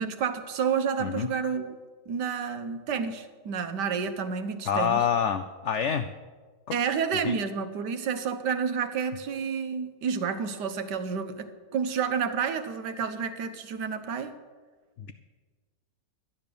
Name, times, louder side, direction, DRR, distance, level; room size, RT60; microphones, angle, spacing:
voice 1, 0.0-1.8 2.1-5.0 6.7-14.3, right 6 dB, 75° right, 9 dB, 1.6 m, -30 dB
voice 2, 4.7-6.1 6.7-6.8 7.2-7.4 15.0-15.1, left 8 dB, 75° left, 10 dB, 0.6 m, -27 dB
12.0 x 10.5 x 6.9 m, 1.4 s
omnidirectional pair, 1.8 m